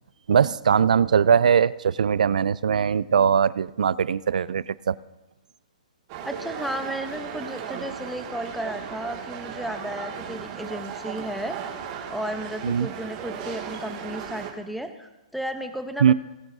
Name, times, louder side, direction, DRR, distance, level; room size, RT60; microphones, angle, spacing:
voice 1, 0.3-5.0 12.6-12.9 16.0-16.1, right 7 dB, 80° right, 20 dB, 0.4 m, -20 dB
sound 1, 6.1-14.5, right 8 dB, 35° right, 2.1 m, -36 dB
voice 2, 6.2-11.6 12.1-16.1, equal, ahead, 7 dB, 0.8 m, -33 dB
19.0 x 10.5 x 2.7 m, 1.0 s
hypercardioid pair, 145°, 4 cm